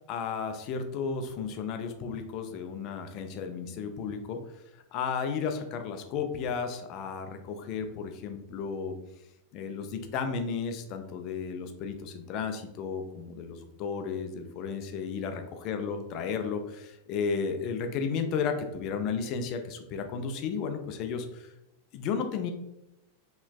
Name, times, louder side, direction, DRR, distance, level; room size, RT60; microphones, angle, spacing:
voice 1, 0.1-4.4 4.9-9.0 9.5-21.5 21.9-22.5, left 6 dB, 40° left, 7 dB, 0.4 m, -33 dB
3.2 x 3.0 x 2.3 m, 0.89 s
figure-of-eight pair, 90°, 0 cm